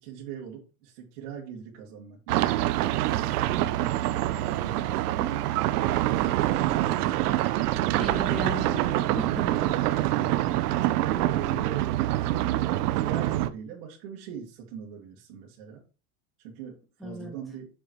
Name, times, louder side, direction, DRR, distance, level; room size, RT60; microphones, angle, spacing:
voice 1, 0.0-2.7 3.1-5.4 6.1-7.4 11.1-12.6 12.9-15.8 16.4-17.7, right 7 dB, 65° right, -3 dB, 2.1 m, -41 dB
sound 1, 2.3-13.5, right 15 dB, 85° right, 0.7 m, -25 dB
voice 2, 8.0-9.7 17.0-17.3, equal, ahead, -2 dB, 1.8 m, -36 dB
7.0 x 6.4 x 3.1 m, 0.34 s
supercardioid pair, 150°, 45 cm